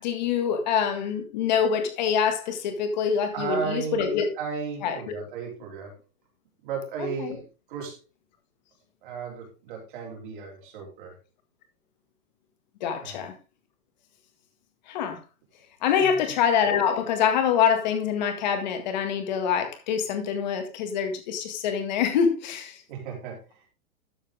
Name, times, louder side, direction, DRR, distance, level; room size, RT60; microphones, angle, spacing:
voice 1, 0.0-4.3 4.8-5.1 7.2-7.4 12.8-13.3 14.9-15.2 15.8-22.8, left 7 dB, 30° left, 1.9 m, -25 dB
voice 2, 3.3-5.9 6.6-8.0 9.0-11.2 13.0-13.2 16.0-16.2 22.9-23.6, right 6 dB, 35° right, 3.8 m, -35 dB
12.5 x 7.3 x 3.6 m
hypercardioid pair, 180°, 42 cm